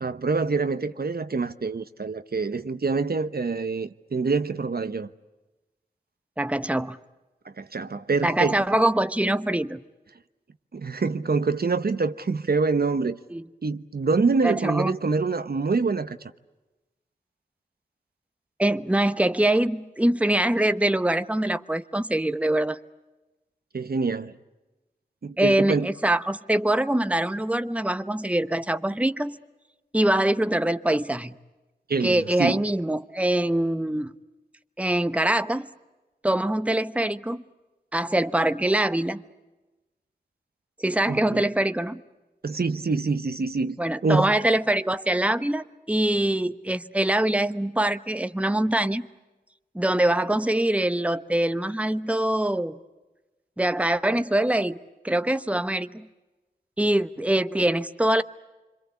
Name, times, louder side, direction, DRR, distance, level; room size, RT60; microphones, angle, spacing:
voice 1, 0.0-5.1 7.4-8.6 10.7-13.2 13.6-16.3 23.7-24.4 25.2-25.9 31.9-32.6 41.1-41.4 42.4-43.8 44.0-44.3, right 4 dB, 65° right, 1.0 m, -26 dB
voice 2, 6.4-7.0 8.2-9.8 13.3-13.5 14.4-14.9 18.6-22.8 25.4-29.4 29.9-31.3 32.0-34.1 34.8-35.7 36.2-37.4 37.9-39.2 40.8-42.0 43.8-49.0 49.7-52.8 53.6-54.8 55.0-56.1 56.8-58.2, right 1 dB, 10° right, 0.9 m, -24 dB
26.0 x 26.0 x 8.3 m
wide cardioid pair, 50°, 17 cm